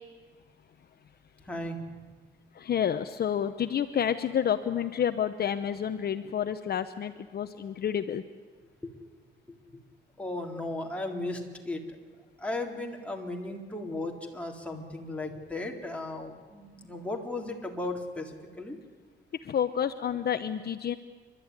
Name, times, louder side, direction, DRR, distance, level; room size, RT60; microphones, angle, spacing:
voice 1, 2.5-8.2 19.4-20.9, left 9 dB, 50° left, 10 dB, 0.9 m, -29 dB
voice 2, 10.2-11.8 12.4-18.3 18.6-18.8, left 2 dB, 5° left, 0 dB, 3.7 m, -35 dB
29.5 x 12.5 x 9.7 m, 1.5 s
cardioid pair, 90°, 20 cm